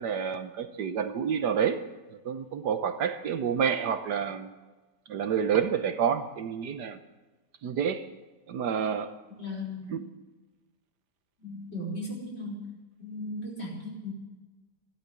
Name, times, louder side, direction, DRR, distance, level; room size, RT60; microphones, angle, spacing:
voice 1, 0.0-1.8 2.2-4.5 5.1-7.0 7.6-8.1 8.5-9.1 9.9-10.0, right 7 dB, 75° right, 10 dB, 1.5 m, -28 dB
voice 2, 9.4-10.0 11.4-12.6 13.0-14.1, left 1 dB, 35° left, -2 dB, 5.2 m, -37 dB
14.0 x 12.5 x 8.2 m, 1.2 s
omnidirectional pair, 1.9 m